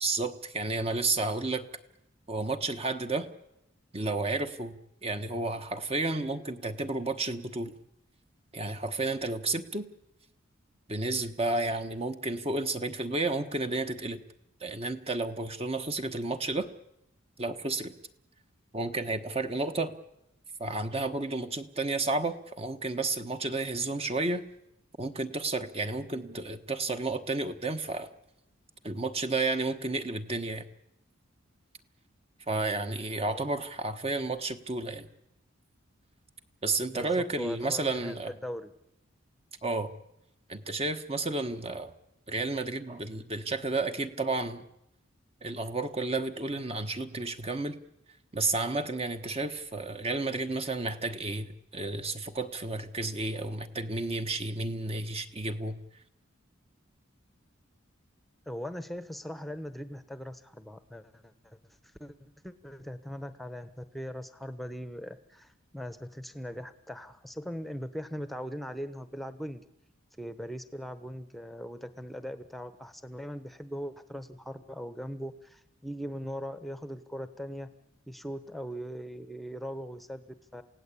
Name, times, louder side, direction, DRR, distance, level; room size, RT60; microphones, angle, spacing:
voice 1, 0.0-1.7 2.3-3.3 3.9-7.7 8.5-9.9 10.9-14.2 14.6-16.7 17.4-17.9 18.7-19.9 20.6-24.4 25.0-28.1 28.8-30.6 32.5-35.1 36.6-38.3 39.6-39.9 40.5-41.9 42.3-44.7 45.4-47.8 48.3-55.8, right 3 dB, 30° right, 8 dB, 1.2 m, -31 dB
voice 2, 36.9-38.7 58.5-61.6 62.0-69.6 70.2-77.7 78.1-80.6, equal, ahead, 11 dB, 1.0 m, -40 dB
28.0 x 17.0 x 8.5 m, 0.86 s
head